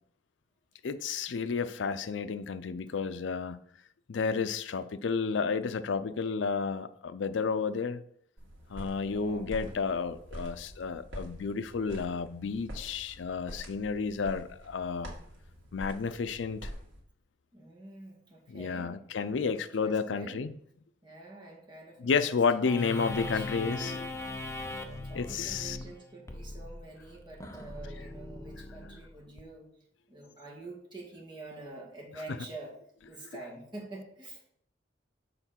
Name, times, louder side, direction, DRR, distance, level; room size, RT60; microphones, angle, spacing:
voice 1, 0.8-3.6 4.1-8.0 8.7-15.1 15.7-16.7 18.5-20.5 22.0-24.1 25.1-25.8, left 5 dB, 70° left, 0.5 m, -31 dB
sound 1, 8.4-17.0, equal, 85° right, 2.0 m, -46 dB
voice 2, 9.0-9.5 17.5-19.0 19.4-20.4 21.0-22.4 22.7-24.2 24.8-29.7 30.1-32.7 33.1-34.4, right 2 dB, 25° right, 1.9 m, -47 dB
sound 2, 22.7-29.4, left 2 dB, 15° left, 0.6 m, -40 dB
6.8 x 4.4 x 5.7 m
head